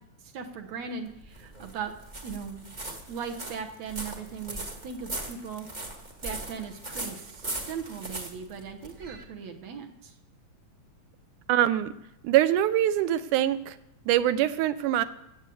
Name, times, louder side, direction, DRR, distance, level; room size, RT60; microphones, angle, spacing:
voice 1, 0.2-1.9 2.2-2.7 3.1-5.7 6.2-10.1, right 6 dB, 65° right, 4 dB, 2.2 m, -38 dB
sound 1, 1.1-9.2, right 2 dB, 35° right, 0.6 m, -39 dB
voice 2, 11.5-11.9 12.2-13.8 14.1-15.1, right 12 dB, 85° right, 13 dB, 2.2 m, -23 dB
15.5 x 8.2 x 7.7 m, 0.83 s
omnidirectional pair, 3.5 m